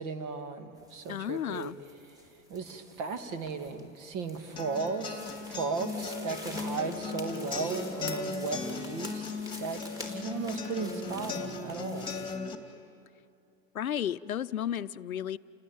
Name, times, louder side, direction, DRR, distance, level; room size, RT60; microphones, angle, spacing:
voice 1, 0.0-1.7 2.5-5.2 5.5-9.3 9.6-12.1, right 4 dB, 45° right, 8 dB, 2.5 m, -36 dB
sound 1, 0.8-12.4, left 1 dB, 10° right, 3.9 m, -47 dB
voice 2, 1.1-1.8 13.7-15.4, left 10 dB, 90° left, 16 dB, 0.7 m, -33 dB
sound 2, 4.6-12.5, left 4 dB, 10° left, 2.4 m, -37 dB
29.5 x 19.0 x 9.3 m, 2.5 s
hypercardioid pair, 110°, 41 cm